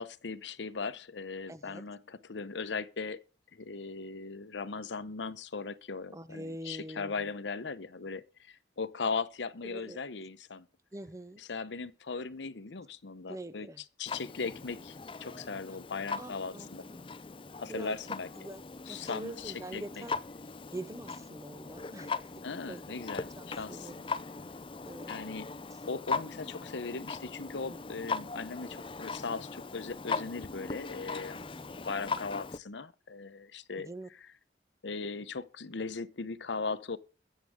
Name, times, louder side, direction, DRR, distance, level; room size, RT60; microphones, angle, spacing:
voice 1, 0.0-3.2 3.5-10.7 11.5-13.7 14.0-16.8 17.6-18.3 18.9-20.0 22.4-23.9 25.1-25.5 25.9-31.5 31.8-33.9 34.8-37.0, left 4 dB, 85° left, 0.8 m, -38 dB
voice 2, 1.5-1.8 6.1-7.3 9.6-10.0 10.9-11.4 13.3-13.8 16.2-17.1 17.7-18.0 18.4-18.6 18.9-20.2 20.5-23.0 23.4-24.1 24.3-25.2 25.7-25.8 27.6-27.8 31.4-31.8 33.8-34.1, right 1 dB, 15° right, 0.7 m, -45 dB
Clock, 14.1-32.6, left 4 dB, 30° left, 0.5 m, -40 dB
22.5 x 7.6 x 3.6 m
head